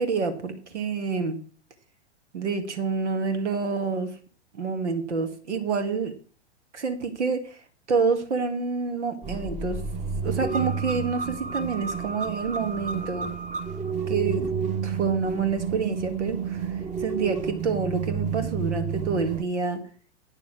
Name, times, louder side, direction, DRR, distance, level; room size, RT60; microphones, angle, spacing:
voice 1, 0.0-1.4 2.3-4.1 4.5-6.1 6.7-7.4 7.9-9.8 10.2-13.3 14.1-14.4 14.8-16.7 17.0-19.8, right 4 dB, 85° right, 7 dB, 2.2 m, -27 dB
sound 1, 9.2-19.4, right 6 dB, 20° right, 1.2 m, -30 dB
9.1 x 6.9 x 6.2 m, 0.41 s
hypercardioid pair, 115°, 34 cm